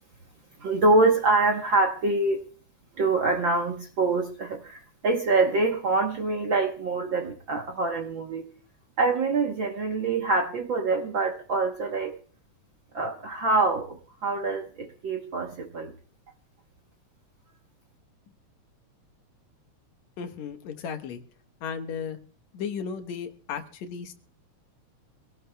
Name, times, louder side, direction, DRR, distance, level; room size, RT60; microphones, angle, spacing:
voice 1, 0.6-2.4 3.0-8.4 9.0-12.2 12.9-15.9, right 3 dB, 55° right, 2 dB, 1.4 m, -25 dB
voice 2, 20.2-21.2 21.6-22.2 22.5-24.1, left 6 dB, 70° left, 7 dB, 2.3 m, -35 dB
25.5 x 17.0 x 2.3 m, 0.40 s
omnidirectional pair, 3.4 m